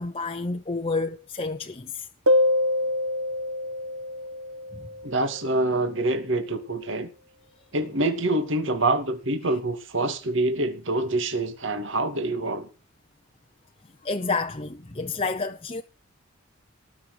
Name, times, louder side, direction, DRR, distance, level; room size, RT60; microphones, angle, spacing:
voice 1, 0.0-2.1 4.8-4.9 14.0-15.8, left 3 dB, 25° left, 0.9 m, -29 dB
sound 1, 2.3-5.6, left 1 dB, 80° right, 1.9 m, -25 dB
voice 2, 5.0-7.1 7.7-12.7, right 2 dB, 60° right, 2.5 m, -26 dB
19.0 x 6.6 x 9.7 m
head